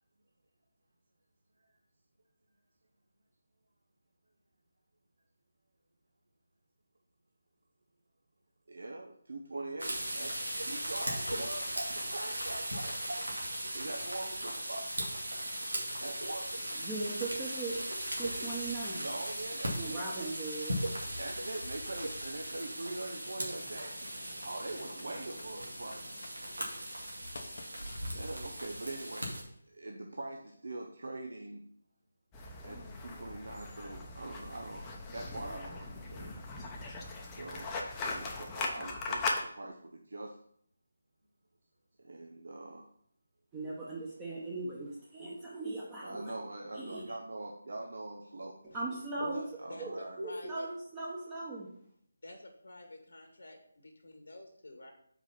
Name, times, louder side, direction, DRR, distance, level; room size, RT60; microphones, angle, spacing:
voice 1, 8.7-10.3 10.7-13.3 13.7-14.9 16.0-16.5 19.0-20.3 21.1-23.9 24.4-26.1 28.1-29.4 29.7-31.6 32.6-36.3 37.3-37.7 38.0-40.4 42.0-42.8 46.0-48.6 49.6-50.2, right 2 dB, 65° right, 1 dB, 0.8 m, -43 dB
sound 1, 9.8-29.4, right 1 dB, 90° right, 2.1 m, -38 dB
voice 2, 16.8-17.8 18.1-19.1 19.7-20.8 43.5-46.3 46.7-47.0 48.7-49.4 49.8-51.7, right 2 dB, 15° right, -6 dB, 1.2 m, -39 dB
Computer keyboard, 21.8-21.9 23.5-23.7 24.6-26.4 27.0-29.7, left 3 dB, 55° left, 0.9 m, -53 dB
sound 2, 32.3-39.4, left 3 dB, 15° left, 0.8 m, -39 dB
voice 3, 49.2-50.7 52.2-54.9, left 1 dB, 70° left, 2 dB, 1.4 m, -48 dB
5.0 x 4.9 x 5.6 m, 0.66 s
figure-of-eight pair, 155°, 0 cm